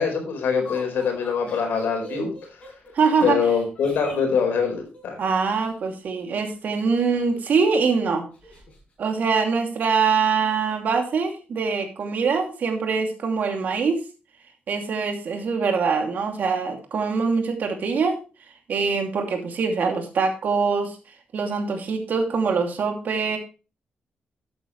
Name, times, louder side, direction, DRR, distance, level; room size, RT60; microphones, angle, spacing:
voice 1, 0.0-2.3 3.2-5.2, left 6 dB, 90° left, 3 dB, 4.4 m, -23 dB
Laughter, 0.6-5.7 6.7-7.6 7.9-8.0 8.3-8.8, left 1 dB, 40° left, 6.6 m, -43 dB
voice 2, 2.9-3.4 5.2-8.2 9.0-14.0 14.7-18.2 18.7-21.0 21.3-23.4, right 5 dB, 55° right, 4 dB, 2.6 m, -23 dB
13.0 x 9.0 x 3.2 m, 0.32 s
wide cardioid pair, 155°, 3 cm